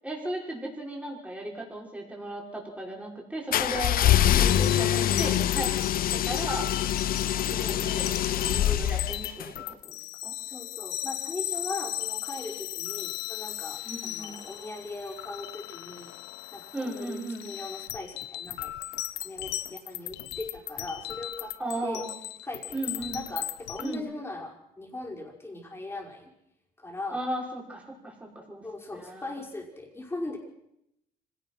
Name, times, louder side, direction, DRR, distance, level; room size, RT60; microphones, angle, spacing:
voice 1, 0.0-4.0 4.4-5.7 6.1-6.7 7.5-8.1 8.3-10.0 10.2-10.3 13.8-14.4 16.7-17.4 21.6-22.2 22.7-23.2 23.8-24.1 27.1-28.6 29.0-29.3, right 1 dB, 10° right, -1 dB, 5.8 m, -36 dB
sound 1, 3.5-9.5, left 11 dB, 60° left, 1.0 m, -25 dB
sound 2, 4.3-24.0, left 15 dB, 85° left, 1.0 m, -37 dB
voice 2, 7.5-7.8 10.4-16.1 16.5-18.7 19.2-21.5 21.8-22.0 22.4-26.3 26.8-27.2 28.6-30.4, left 2 dB, 15° left, 0 dB, 5.5 m, -39 dB
25.0 x 18.0 x 6.0 m, 0.80 s
cardioid pair, 110°, 17 cm